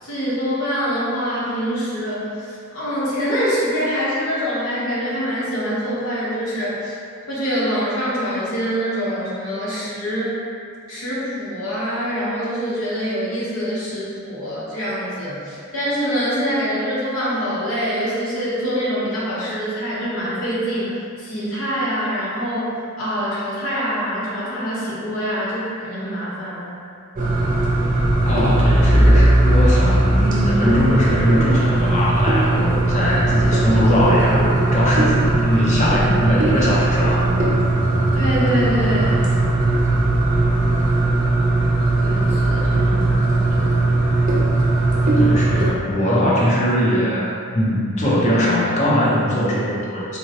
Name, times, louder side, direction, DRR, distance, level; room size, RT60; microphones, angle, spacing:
voice 1, 0.0-7.0 7.3-10.3 10.9-26.8 38.1-39.2 42.0-43.8, equal, 65° left, -8 dB, 0.9 m, -25 dB
sound 1, 27.2-45.7, right 2 dB, 35° right, 0.5 m, -18 dB
voice 2, 28.2-37.3 45.2-50.2, equal, 35° left, -6 dB, 0.6 m, -20 dB
3.8 x 2.1 x 2.8 m, 2.4 s
head